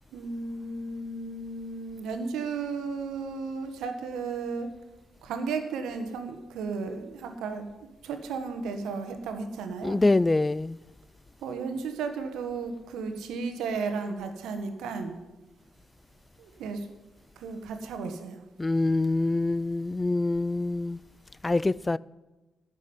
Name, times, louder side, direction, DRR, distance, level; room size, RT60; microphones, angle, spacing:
voice 1, 0.1-4.7 5.2-7.7 8.0-10.0 11.4-15.2 16.4-16.9 17.4-18.4, right 4 dB, 80° right, 1.5 m, -34 dB
voice 2, 9.8-10.8 18.6-21.0 21.4-22.0, left 2 dB, 25° left, 0.3 m, -25 dB
12.0 x 6.4 x 9.6 m
supercardioid pair, 50°, 0 cm